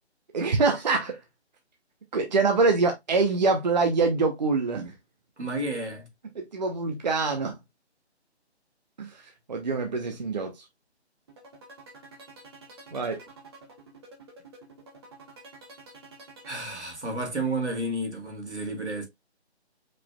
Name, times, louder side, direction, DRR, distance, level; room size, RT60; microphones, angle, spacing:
voice 1, 0.3-1.2 2.1-4.9 6.3-7.6 9.0-10.6 12.9-13.2, right 4 dB, 40° right, 0.9 m, -25 dB
voice 2, 5.4-6.1 16.5-19.1, right 2 dB, 80° right, 2.6 m, -31 dB
sound 1, 11.3-17.2, right 3 dB, 25° right, 1.4 m, -49 dB
5.1 x 4.1 x 2.3 m
figure-of-eight pair, 155°, 34 cm